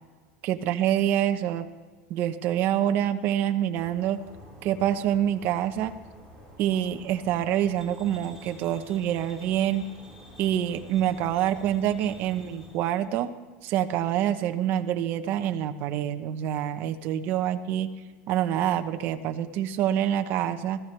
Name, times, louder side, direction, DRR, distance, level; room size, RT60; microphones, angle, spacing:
voice 1, 0.4-1.7 2.1-4.2 4.6-5.9 6.6-9.8 10.4-13.3 13.6-17.9 18.3-20.8, right 11 dB, 40° right, 9 dB, 0.8 m, -26 dB
sound 1, 3.7-12.7, equal, 20° left, 3.2 m, -49 dB
sound 2, 7.8-13.0, right 1 dB, 5° right, 4.1 m, -54 dB
22.5 x 15.5 x 3.3 m, 1.4 s
cardioid pair, 170°, 5 cm